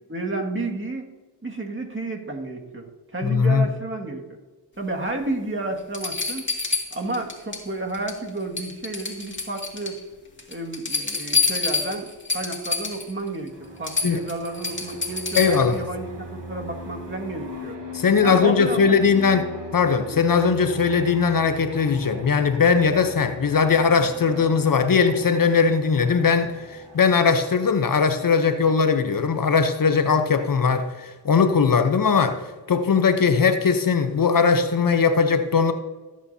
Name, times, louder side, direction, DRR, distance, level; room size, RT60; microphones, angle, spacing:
voice 1, 0.1-1.1 1.4-4.2 4.8-6.4 6.9-10.0 10.5-13.5 13.8-17.8 18.2-18.9 20.1-20.2, right 2 dB, 30° right, 1 dB, 2.0 m, -31 dB
voice 2, 3.2-3.7 14.0-14.2 15.3-15.8 17.9-19.5 19.7-32.4 32.7-35.7, left 5 dB, 50° left, 8 dB, 0.9 m, -20 dB
sound 1, 5.2-5.3 5.9-7.7 7.9-8.3 8.6-10.0 10.4-13.1 13.5-13.6 13.8-15.8 17.4-17.5, left 4 dB, 25° left, 2.4 m, -27 dB
Fixed-wing aircraft airplane, 13.5-28.7, equal, 85° right, 2.6 m, -40 dB
16.5 x 8.7 x 2.8 m, 1.3 s
cardioid pair, 55°, 42 cm